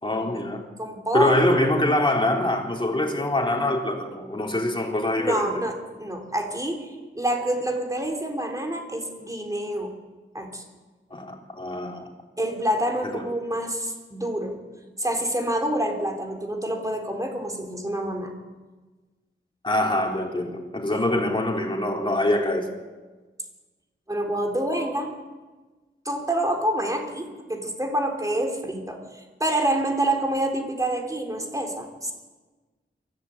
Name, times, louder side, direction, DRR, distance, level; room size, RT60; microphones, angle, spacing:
voice 1, 0.0-0.6 1.1-5.5 11.1-12.1 13.0-13.1 19.6-22.7, left 1 dB, 25° left, 0 dB, 3.6 m, -24 dB
voice 2, 0.8-1.6 5.2-9.9 10.3-10.6 12.4-14.6 15.0-18.3 20.9-21.2 24.1-25.1 26.1-32.1, right 1 dB, 15° right, 3 dB, 3.7 m, -27 dB
23.0 x 15.5 x 8.7 m, 1.3 s
wide cardioid pair, 95°, 20 cm